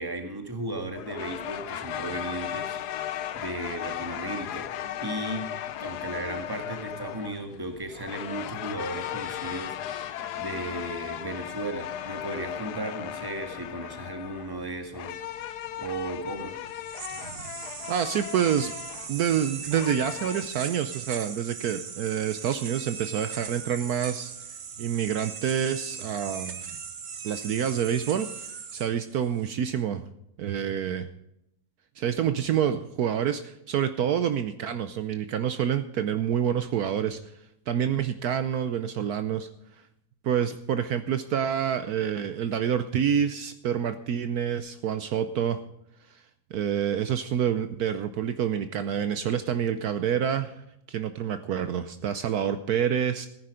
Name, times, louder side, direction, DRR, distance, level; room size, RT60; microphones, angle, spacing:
voice 1, 0.0-2.8 3.3-4.7 5.0-5.5 5.8-15.1 15.8-16.6, right 2 dB, 15° right, 5 dB, 1.8 m, -35 dB
sound 1, 0.9-20.4, left 11 dB, 75° left, 1.3 m, -36 dB
sound 2, 16.7-29.5, right 6 dB, 50° right, 1.2 m, -39 dB
voice 2, 17.9-18.7 19.1-24.3 24.8-26.6 27.2-28.3 28.7-30.0 30.4-31.1 32.0-37.2 37.7-39.5 40.2-45.6 46.1-46.2 46.5-50.5 50.9-53.3, right 8 dB, 70° right, 10 dB, 1.2 m, -27 dB
15.0 x 10.0 x 5.0 m, 0.78 s
omnidirectional pair, 1.8 m